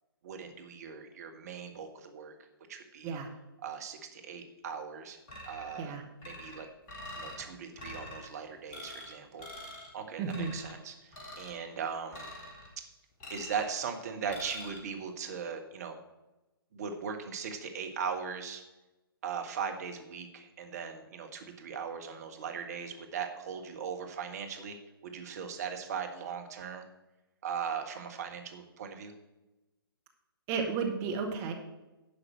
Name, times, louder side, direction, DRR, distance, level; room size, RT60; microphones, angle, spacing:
voice 1, 0.2-2.3 2.7-3.2 3.6-5.2 5.4-5.9 6.2-6.7 7.1-12.3 13.3-16.0 16.7-18.6 19.2-24.8 25.0-26.8 27.4-29.1, right 6 dB, 40° right, 5 dB, 1.5 m, -39 dB
sound 1, 5.3-5.9 6.2-7.4 7.8-8.3 8.7-9.1 9.4-9.9 10.3-10.7 11.1-11.6 12.1-12.7 13.2-13.7 14.3-14.8, left 1 dB, 25° left, 2.2 m, -45 dB
voice 2, 10.2-10.5 30.5-31.5, right 5 dB, 20° right, 4 dB, 1.2 m, -33 dB
11.0 x 4.9 x 7.4 m, 1.0 s
figure-of-eight pair, 125°, 13 cm